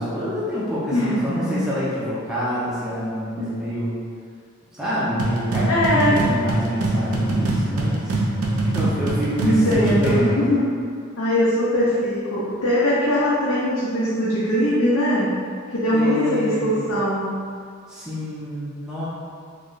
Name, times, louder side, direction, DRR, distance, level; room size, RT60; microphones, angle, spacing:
voice 1, 0.0-4.0 4.7-8.2 8.6-10.6 15.9-16.9 17.9-19.1, equal, 5° right, -10 dB, 0.6 m, -27 dB
voice 2, 0.9-1.7 3.4-3.5 5.7-6.2 9.4-10.6 11.2-15.4 15.7-17.4, equal, 75° left, -10 dB, 0.6 m, -21 dB
sound 1, 5.2-10.3, right 2 dB, 85° right, 0.6 m, -23 dB
3.2 x 2.2 x 3.8 m, 2.2 s
head